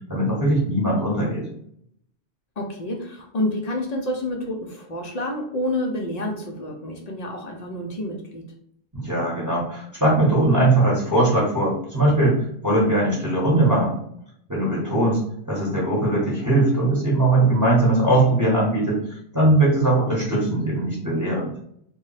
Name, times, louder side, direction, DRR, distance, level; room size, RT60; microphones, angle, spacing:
voice 1, 0.1-1.4 8.9-14.0 14.5-15.2 15.5-19.0 19.3-21.5, right 1 dB, 15° right, -5 dB, 0.8 m, -20 dB
voice 2, 2.6-8.4, left 1 dB, 60° left, 1 dB, 0.4 m, -28 dB
2.2 x 2.1 x 3.8 m, 0.68 s
omnidirectional pair, 1.2 m